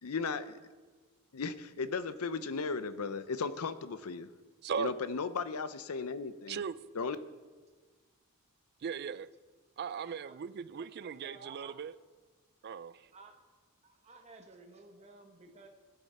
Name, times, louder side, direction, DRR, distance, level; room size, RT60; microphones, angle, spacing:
voice 1, 0.0-0.5 1.3-4.3 4.8-6.6 7.0-7.2, left 4 dB, 70° left, 0.6 m, -36 dB
voice 2, 4.6-4.9 6.5-6.8 8.8-9.3 9.8-11.9 12.6-13.1, right 6 dB, 45° right, 0.3 m, -38 dB
voice 3, 10.0-10.4 10.8-11.8 13.1-13.4 13.8-15.7, right 3 dB, 30° right, 1.0 m, -54 dB
18.0 x 7.0 x 4.2 m
head